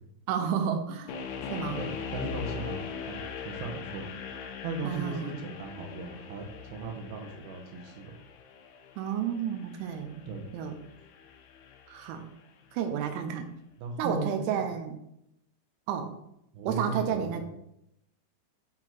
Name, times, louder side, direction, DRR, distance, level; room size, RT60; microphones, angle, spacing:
voice 1, 0.3-1.1 1.5-1.9 4.8-5.3 9.0-10.2 10.5-10.7 11.9-12.3 12.7-13.5 14.0-15.0 15.9-16.1 16.7-17.4, right 8 dB, 85° right, 6 dB, 3.1 m, -31 dB
sound 1, 1.1-12.1, left 7 dB, 80° left, 2.3 m, -41 dB
voice 2, 1.7-4.1 4.6-8.2 10.3-10.4 13.8-14.7 16.5-17.4, right 3 dB, 70° right, 2 dB, 2.5 m, -37 dB
8.1 x 3.9 x 4.4 m, 0.80 s
omnidirectional pair, 5.4 m